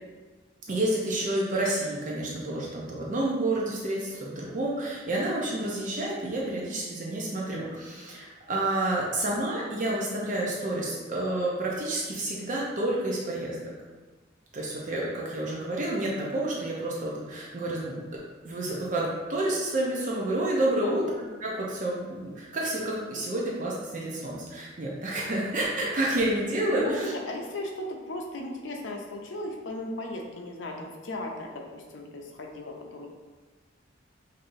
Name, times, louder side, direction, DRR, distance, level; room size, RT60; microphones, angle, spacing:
voice 1, 0.7-13.6 14.5-18.0 18.4-21.0 21.4-27.1, right 1 dB, 45° right, -4 dB, 0.6 m, -29 dB
voice 2, 26.7-33.1, left 1 dB, 80° left, 1 dB, 0.6 m, -36 dB
5.3 x 2.6 x 2.6 m, 1.3 s
head